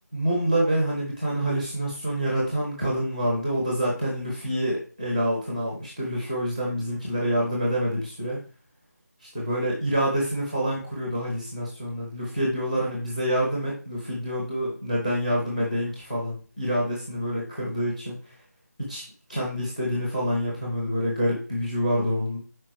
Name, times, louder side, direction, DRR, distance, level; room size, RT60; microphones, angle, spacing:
voice 1, 0.1-8.4 9.3-18.2 18.8-19.0 19.3-22.4, equal, ahead, -4 dB, 0.7 m, -27 dB
5.2 x 4.7 x 4.6 m, 0.38 s
figure-of-eight pair, 180°, 10 cm